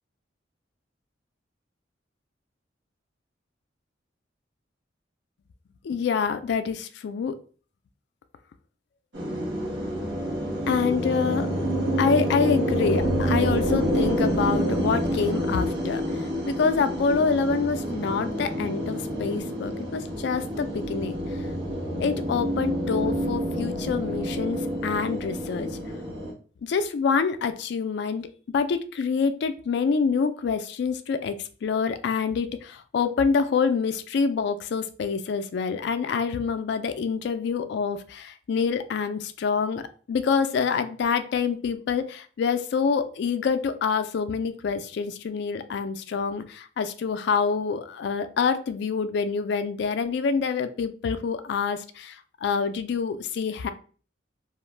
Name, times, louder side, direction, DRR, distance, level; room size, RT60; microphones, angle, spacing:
voice 1, 5.8-7.3 10.7-11.5 12.0-16.0 16.5-21.2 22.0-25.7 26.6-31.4 31.6-39.8 40.1-53.7, left 5 dB, 60° left, 11 dB, 0.3 m, -26 dB
sound 1, 9.1-26.3, equal, 80° right, 1.0 m, -28 dB
2.4 x 2.1 x 3.1 m, 0.40 s
head